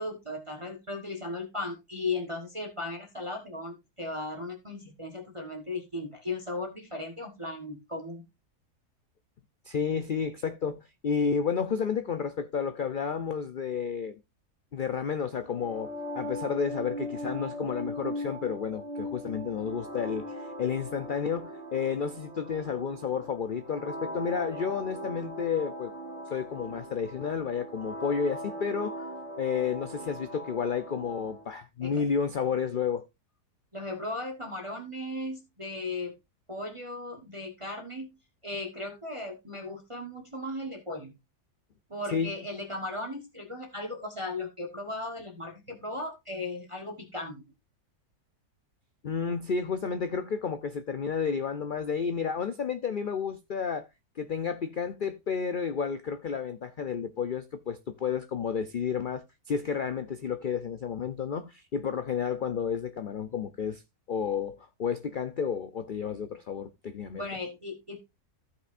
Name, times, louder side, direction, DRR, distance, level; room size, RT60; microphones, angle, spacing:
voice 1, 0.0-8.2 31.8-32.1 33.7-36.2 36.5-38.2 38.4-41.1 41.9-47.5 67.1-68.0, left 2 dB, 20° right, 1.3 m, -36 dB
voice 2, 9.6-14.1 14.7-25.9 26.3-29.1 29.4-33.1 42.1-42.3 49.0-53.9 54.2-63.8 64.1-67.3, left 6 dB, 75° left, 0.4 m, -31 dB
sound 1, 15.5-31.4, equal, 20° left, 2.5 m, -40 dB
15.0 x 5.7 x 2.5 m
omnidirectional pair, 1.7 m